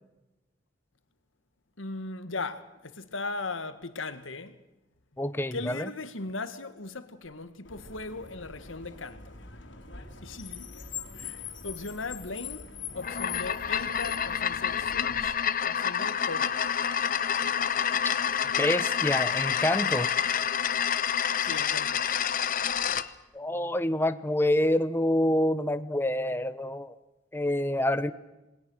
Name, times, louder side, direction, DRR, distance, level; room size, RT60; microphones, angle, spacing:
voice 1, 1.8-4.6 5.5-9.3 10.2-10.7 11.1-12.7 12.9-15.4 15.6-16.6 21.4-22.1, left 3 dB, 90° left, 1.8 m, -38 dB
voice 2, 5.2-5.9 18.6-20.1 23.3-26.9 27.3-28.1, left 1 dB, 10° left, 1.0 m, -27 dB
Car, 7.6-15.2, left 7 dB, 70° left, 3.5 m, -42 dB
sound 1, 12.9-23.1, left 8 dB, 45° left, 0.9 m, -28 dB
27.5 x 21.0 x 6.4 m
head